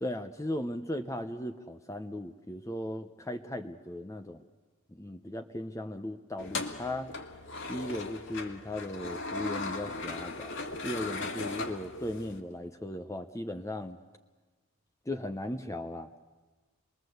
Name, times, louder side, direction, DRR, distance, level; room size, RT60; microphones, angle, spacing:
voice 1, 0.0-4.4 4.9-7.1 7.7-14.0 15.1-16.1, left 1 dB, 15° left, 7 dB, 0.7 m, -37 dB
sound 1, 6.4-12.4, left 3 dB, 55° left, 1.9 m, -38 dB
27.0 x 21.5 x 8.0 m, 1.3 s
head